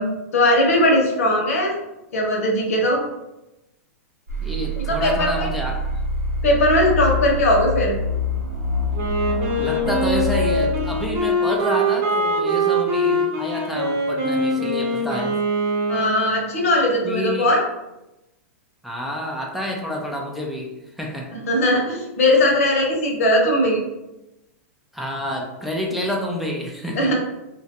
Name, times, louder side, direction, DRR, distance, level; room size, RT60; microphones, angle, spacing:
voice 1, 0.0-1.8 2.1-3.0 5.0-5.5 6.4-7.9 15.9-17.6 21.4-23.8 27.0-27.1, left 1 dB, 75° left, -1 dB, 0.8 m, -19 dB
sound 1, 4.3-11.2, left 2 dB, 90° right, 0.9 m, -26 dB
voice 2, 4.4-5.9 9.6-15.4 17.0-17.5 18.8-21.3 21.7-21.8 24.9-27.1, equal, ahead, -2 dB, 0.4 m, -28 dB
Wind instrument woodwind instrument, 8.9-16.6, right 1 dB, 50° right, 0.8 m, -23 dB
2.3 x 2.1 x 2.8 m, 0.95 s
hypercardioid pair, 115°, 8 cm